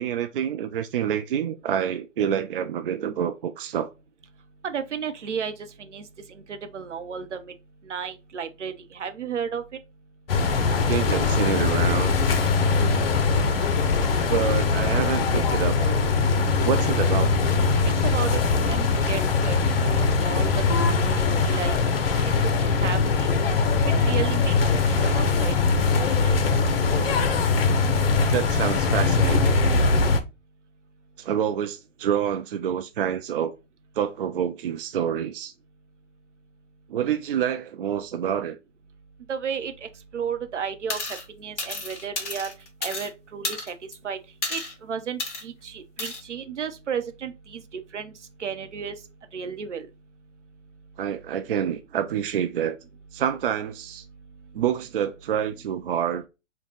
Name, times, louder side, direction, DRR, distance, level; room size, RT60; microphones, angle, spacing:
voice 1, 0.0-3.9 10.9-12.1 14.3-15.8 16.5-17.3 28.3-29.6 31.2-33.5 34.0-35.5 36.9-38.6 51.0-52.8 53.1-54.0 54.5-56.3, right 9 dB, 50° right, 0.4 m, -27 dB
voice 2, 4.6-5.5 5.8-6.0 6.5-7.5 7.9-9.6 18.0-20.6 20.9-21.8 22.2-22.3 22.6-23.3 23.9-24.5 24.9-25.6 26.0-26.4 39.3-39.7 40.1-41.0 41.4-42.5 42.8-43.7 44.0-44.2 44.5-47.6 47.9-48.1 48.4-49.0 49.3-49.9, right 7 dB, 70° right, 0.8 m, -33 dB
sound 1, 10.3-30.2, left 4 dB, 50° left, 0.7 m, -21 dB
sound 2, 40.9-41.2 41.6-43.1 43.4-43.9 44.4-44.7 45.2-45.4 46.0-46.2, left 3 dB, 10° left, 0.4 m, -32 dB
4.5 x 2.3 x 3.8 m
figure-of-eight pair, 125°, 37 cm